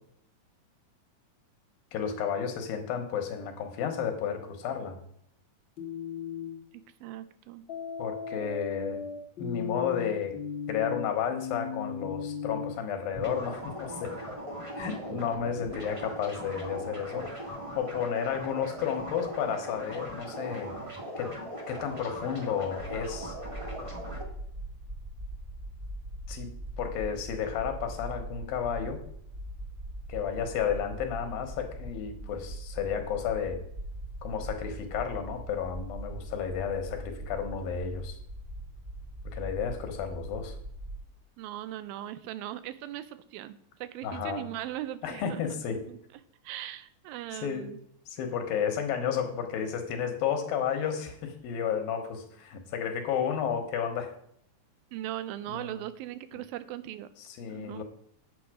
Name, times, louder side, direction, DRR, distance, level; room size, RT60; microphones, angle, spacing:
voice 1, 1.9-5.0 8.0-9.0 9.4-10.3 10.7-14.1 14.8-20.7 21.2-21.3 21.7-23.4 26.3-26.5 26.8-29.0 30.1-33.6 34.2-38.2 39.2-40.6 44.0-44.5 45.0-45.9 47.3-47.7 48.1-54.1 55.5-55.8 57.2-57.8, left 7 dB, 85° left, 6 dB, 3.0 m, -32 dB
sound 1, 5.8-6.6 7.7-12.7, left 7 dB, 65° left, 1.2 m, -36 dB
voice 2, 7.0-7.6 41.4-46.0 46.4-47.8 54.9-57.1 57.5-57.8, right 13 dB, 90° right, 14 dB, 2.4 m, -39 dB
sound 2, 13.1-24.2, equal, 45° right, 0.4 m, -39 dB
sound 3, 22.8-41.0, right 1 dB, 15° right, 0.7 m, -41 dB
8.8 x 7.0 x 4.9 m, 0.71 s
omnidirectional pair, 4.1 m